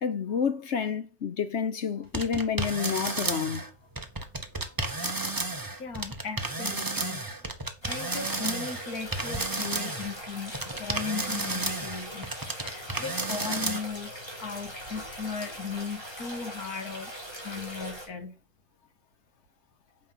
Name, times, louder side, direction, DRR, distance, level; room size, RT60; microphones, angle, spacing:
voice 1, 0.0-3.7 4.6-4.7, left 6 dB, 55° left, 1.0 m, -29 dB
sound 1, 2.1-3.7 3.9-10.2 10.5-13.8, right 2 dB, 15° right, 0.9 m, -32 dB
voice 2, 5.8-7.3 7.9-12.3 12.6-14.1 14.4-17.1 17.4-18.3, left 5 dB, 85° left, 2.1 m, -37 dB
sound 2, 7.8-18.1, equal, 15° left, 3.5 m, -41 dB
8.7 x 6.0 x 5.6 m
omnidirectional pair, 1.5 m